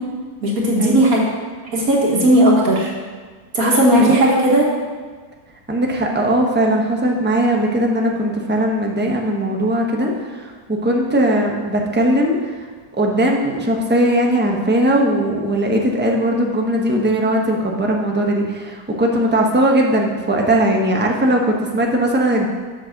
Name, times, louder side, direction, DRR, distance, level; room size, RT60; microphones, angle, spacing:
voice 1, 0.4-1.2 1.7-2.9 3.5-4.7, right 1 dB, 70° right, -2 dB, 1.7 m, -15 dB
voice 2, 5.7-12.5 12.9-22.5, right 1 dB, 10° right, 0 dB, 0.7 m, -19 dB
7.2 x 6.3 x 6.4 m, 1.5 s
omnidirectional pair, 1.6 m